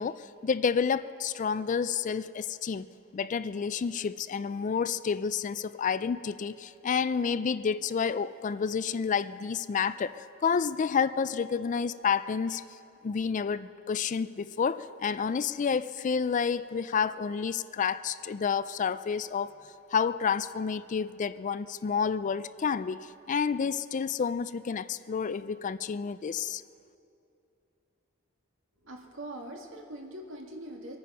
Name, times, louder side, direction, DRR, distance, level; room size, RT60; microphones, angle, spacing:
voice 1, 0.0-2.9 3.1-12.6 13.0-19.5 19.9-26.6, left 6 dB, 40° left, 15 dB, 0.3 m, -29 dB
voice 2, 28.8-31.0, right 1 dB, 80° right, 2 dB, 1.8 m, -42 dB
24.5 x 9.5 x 5.5 m, 2.7 s
head